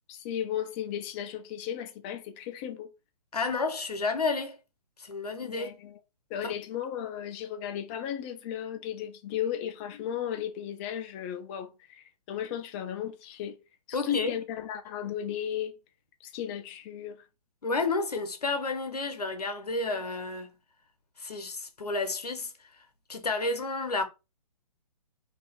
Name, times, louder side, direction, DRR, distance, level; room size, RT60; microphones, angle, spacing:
voice 1, 0.1-2.9 5.4-6.0 6.3-13.6 13.9-15.8 16.2-17.2 23.5-23.6, left 10 dB, 15° left, 0.3 m, -35 dB
voice 2, 3.3-4.6 5.0-5.8 6.4-6.6 13.9-14.3 17.6-20.5 21.2-22.5 23.1-24.0, left 3 dB, 90° left, 0.8 m, -31 dB
2.6 x 2.4 x 3.5 m
figure-of-eight pair, 135°, 20 cm